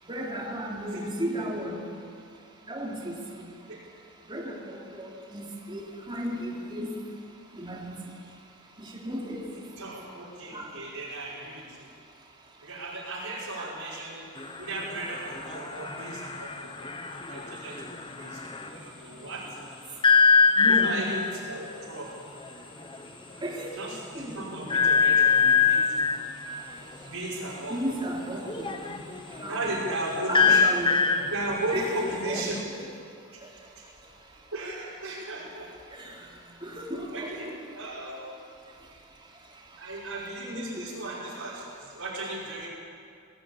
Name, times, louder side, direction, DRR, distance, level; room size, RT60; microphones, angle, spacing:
voice 1, 0.1-1.8 2.7-3.1 4.3-5.8 6.1-6.9 7.5-7.9 9.0-9.4 10.5-10.7 13.6-13.7 20.6-21.0 23.4-23.7 24.1-24.5 27.7-28.7 29.4-29.7 30.3-31.0 31.7-32.0 36.0-36.1 36.6-37.3 40.4-40.9, equal, 20° right, -2 dB, 3.1 m, -34 dB
voice 2, 9.5-11.9 12.6-14.3 14.6-16.8 17.2-19.6 20.6-22.1 23.7-26.2 27.0-28.0 28.9-29.0 29.5-30.7 31.1-32.9 33.8-33.9 34.5-35.7 37.1-37.5 37.8-38.3 39.8-42.7, right 2 dB, 70° right, -7 dB, 5.5 m, -36 dB
sound 1, 14.4-18.8 20.0-21.3 22.4-22.5 22.8-23.1 23.5-23.6 24.7-26.3 28.5-32.6, left 5 dB, 25° left, 1.1 m, -24 dB
20.5 x 15.0 x 8.7 m, 2.3 s
head